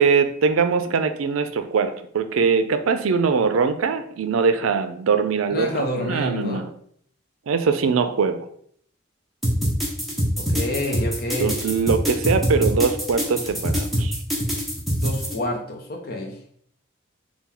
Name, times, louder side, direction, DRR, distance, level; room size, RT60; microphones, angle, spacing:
voice 1, 0.0-6.7 7.5-8.4 11.4-14.2, right 5 dB, 85° right, 9 dB, 0.4 m, -22 dB
voice 2, 5.5-6.7 10.4-11.6 15.0-16.3, left 1 dB, 50° left, 2 dB, 0.7 m, -28 dB
sound 1, 9.4-15.3, equal, ahead, 0.7 m, -24 dB
4.3 x 2.2 x 3.7 m, 0.64 s
head